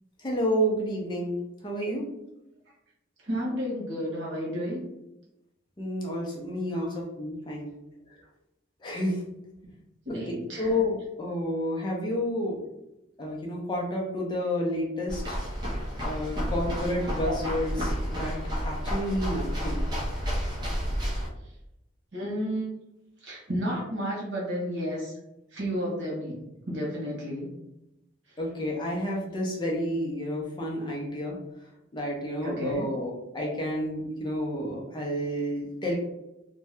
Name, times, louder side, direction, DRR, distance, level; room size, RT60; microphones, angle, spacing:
voice 1, 0.2-1.4 1.6-2.0 5.8-7.7 8.8-9.3 10.6-12.6 13.2-15.4 16.0-18.4 18.6-19.8 28.4-31.4 31.9-36.0, equal, 25° left, -2 dB, 0.5 m, -30 dB
voice 2, 3.3-4.8 6.7-6.9 10.0-10.7 17.0-17.4 22.1-22.6 23.2-25.1 25.5-26.4 26.7-27.5 32.4-32.9, equal, 70° right, -4 dB, 1.2 m, -32 dB
sound 1, 15.1-21.3, equal, 20° right, 0.7 m, -30 dB
2.7 x 2.2 x 3.4 m, 0.89 s
head